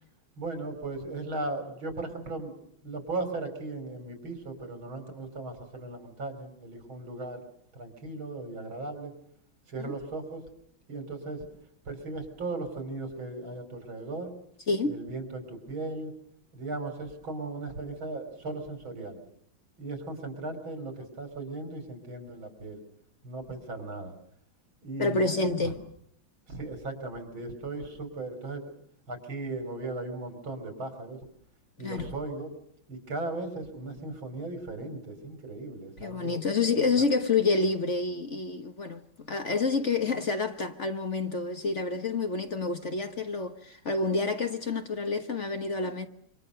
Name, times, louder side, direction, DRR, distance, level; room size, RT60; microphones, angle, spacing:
voice 1, 0.4-2.5 2.8-7.4 7.7-9.1 9.7-10.4 10.9-11.5 11.9-14.3 14.9-16.1 16.5-19.2 19.8-22.8 23.2-24.1 24.8-25.7 26.5-28.7 29.1-31.2 31.8-32.5 32.9-36.4 36.8-37.1, right 2 dB, 85° right, 4.9 m, -37 dB
voice 2, 14.7-15.0 25.0-25.8 31.8-32.1 36.0-39.0 39.3-46.1, left 3 dB, 40° left, 1.4 m, -28 dB
27.0 x 25.5 x 6.8 m
omnidirectional pair, 2.1 m